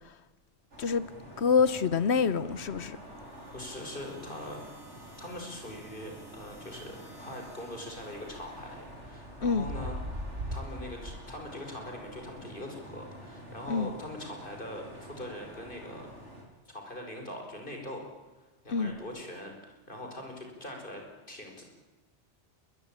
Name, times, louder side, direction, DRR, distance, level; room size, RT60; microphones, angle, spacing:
sound 1, 0.7-16.4, equal, 85° right, 4.6 m, -44 dB
voice 1, 0.8-1.1 1.4-3.0 9.4-9.7 13.7-13.9 18.7-18.9, left 5 dB, 70° left, 1.2 m, -26 dB
sound 2, 2.9-9.0, right 2 dB, 20° right, 4.7 m, -58 dB
voice 2, 3.5-4.6 5.2-10.3 10.5-16.1 16.7-18.1 18.4-21.6, left 1 dB, 45° left, 5.4 m, -42 dB
21.0 x 21.0 x 8.9 m
omnidirectional pair, 1.2 m